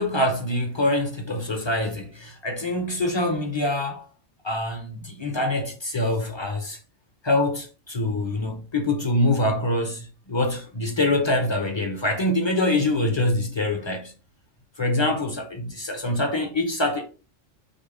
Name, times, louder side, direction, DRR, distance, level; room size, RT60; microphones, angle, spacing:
voice 1, 0.0-4.1 4.4-6.8 7.2-14.1 14.8-17.1, left 1 dB, 30° left, 0.5 m, -25 dB
5.2 x 2.1 x 4.8 m
omnidirectional pair, 1.3 m